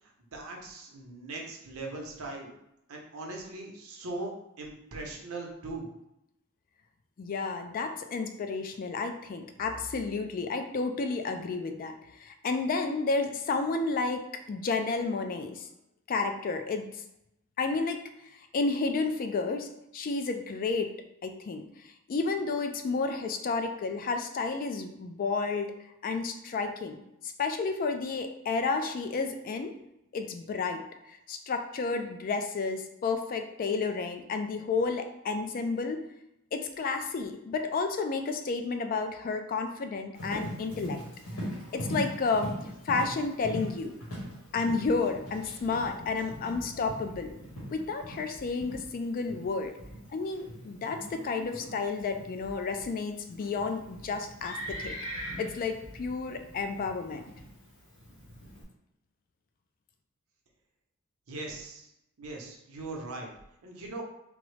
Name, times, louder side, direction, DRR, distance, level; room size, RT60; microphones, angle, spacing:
voice 1, 0.3-2.5 2.9-4.3 4.6-5.9 61.3-61.9 62.2-63.3 63.6-64.0, right 2 dB, 85° right, 0 dB, 0.7 m, -40 dB
voice 2, 7.2-15.7 16.1-16.9 17.6-18.0 18.3-20.9 21.2-25.8 26.0-29.8 30.1-36.0 36.5-41.0 41.7-42.5 42.8-44.0 44.5-47.3 47.7-49.7 50.1-54.9 55.4-57.2, left 4 dB, 40° left, 7 dB, 0.3 m, -31 dB
Livestock farm animals working animals, 40.2-58.6, equal, 85° left, 1.2 m, -41 dB
3.6 x 2.0 x 3.1 m, 0.83 s
head